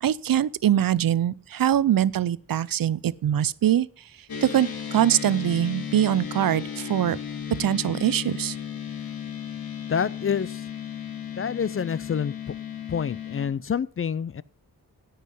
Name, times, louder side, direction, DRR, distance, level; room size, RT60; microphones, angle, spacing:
voice 1, 0.0-3.9 4.4-7.2 7.6-8.6, right 11 dB, 70° right, 0.6 m, -23 dB
sound 1, 4.3-13.5, left 8 dB, 75° left, 2.6 m, -35 dB
voice 2, 9.9-10.7 11.4-12.3 12.9-14.4, left 7 dB, 40° left, 0.4 m, -27 dB
17.0 x 5.7 x 5.4 m
wide cardioid pair, 105°, 36 cm